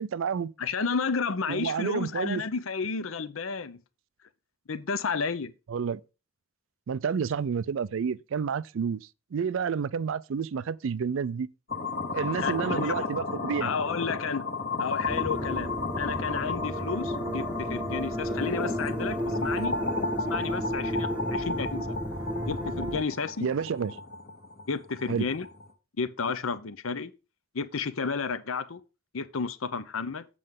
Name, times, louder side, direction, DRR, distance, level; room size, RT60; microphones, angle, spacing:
voice 1, 0.0-0.5 1.5-2.4 5.7-6.0 6.9-11.5 12.1-13.7 23.4-23.9 25.1-25.3, right 6 dB, 65° right, 0.4 m, -30 dB
voice 2, 0.6-3.8 4.7-5.5 12.3-13.1 13.6-14.4 14.8-19.8 20.2-22.0 22.5-23.5 24.7-25.5 26.0-27.1 27.5-28.8 29.1-30.3, left 5 dB, 70° left, 0.7 m, -32 dB
sound 1, 11.7-25.7, left 3 dB, 50° left, 1.3 m, -33 dB
sound 2, 15.1-23.0, equal, 5° right, 0.8 m, -33 dB
7.8 x 7.6 x 3.6 m
head